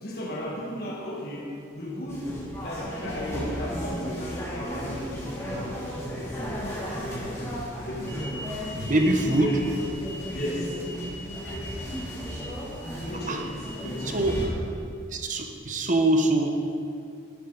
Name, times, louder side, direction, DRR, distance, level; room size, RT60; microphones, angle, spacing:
voice 1, 0.0-2.3 2.6-8.5 8.7-9.1 9.4-9.6 10.3-10.8 13.0-14.6, left 1 dB, 55° left, -4 dB, 1.7 m, -36 dB
sound 1, 2.1-14.4, equal, 15° left, 2.5 m, -34 dB
voice 2, 8.8-9.5 11.5-11.6 13.3-13.4 14.0-14.4 15.1-16.5, right 1 dB, 40° right, 4 dB, 0.9 m, -24 dB
11.5 x 9.6 x 3.9 m, 2.5 s
head